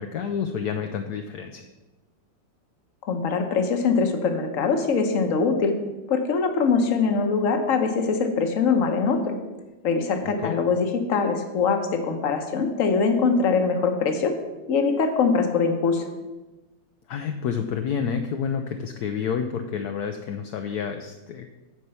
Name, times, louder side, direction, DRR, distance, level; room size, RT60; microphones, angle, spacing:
voice 1, 0.0-1.7 10.2-10.6 17.1-21.5, left 7 dB, 70° left, 6 dB, 1.0 m, -29 dB
voice 2, 3.0-5.7 6.1-9.4 9.8-14.3 14.7-16.1, left 5 dB, 50° left, 5 dB, 1.2 m, -23 dB
9.5 x 4.7 x 6.9 m, 1.1 s
omnidirectional pair, 2.0 m